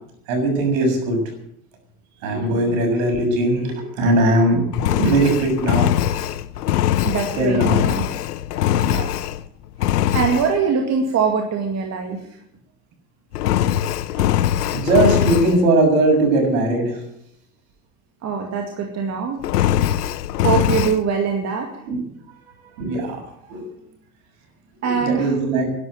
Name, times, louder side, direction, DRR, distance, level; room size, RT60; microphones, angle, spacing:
voice 1, 0.3-1.2 2.2-4.6 4.9-5.9 7.4-7.8 8.8-9.1 14.7-17.0 21.9-22.0 22.8-23.2 23.5-23.6 24.8-25.7, right 2 dB, 60° right, 3 dB, 7.0 m, -19 dB
Engine, 4.7-9.5 9.8-10.5 13.3-15.6 19.4-21.0, left 11 dB, 75° left, 0.9 m, -21 dB
voice 2, 7.0-8.1 10.1-12.2 18.2-19.4 20.4-21.7 24.8-25.3, right 6 dB, 35° right, 3 dB, 2.2 m, -22 dB
11.5 x 11.5 x 9.1 m, 0.75 s
hypercardioid pair, 95°, 47 cm